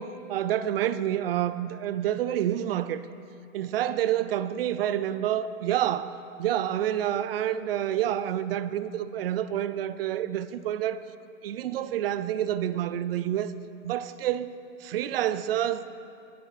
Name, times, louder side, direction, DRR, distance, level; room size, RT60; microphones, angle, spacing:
voice 1, 0.0-3.0 3.5-11.0 11.4-13.5 13.8-14.5 14.8-15.8, right 11 dB, 45° right, 14 dB, 0.4 m, -28 dB
19.5 x 6.7 x 4.1 m, 2.7 s
hypercardioid pair, 140°, 41 cm